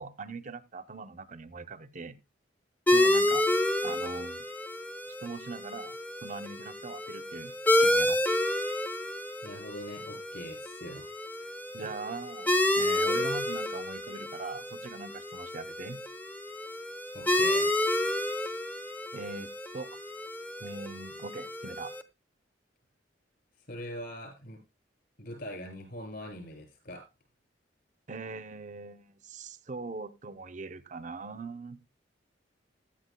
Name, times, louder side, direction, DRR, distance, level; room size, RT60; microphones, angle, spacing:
voice 1, 0.0-2.2 2.9-3.5 3.8-4.4 5.2-7.5 7.8-8.2 11.7-16.0 19.1-20.0 20.6-21.9 28.1-31.8, right 3 dB, 40° right, 0.7 m, -41 dB
sound 1, 2.9-22.0, left 1 dB, 10° left, 0.8 m, -30 dB
voice 2, 9.4-11.1 11.3-11.5 17.1-17.7 23.7-24.6 25.2-27.0, left 1 dB, 55° left, 7.0 m, -42 dB
16.0 x 12.0 x 2.2 m
head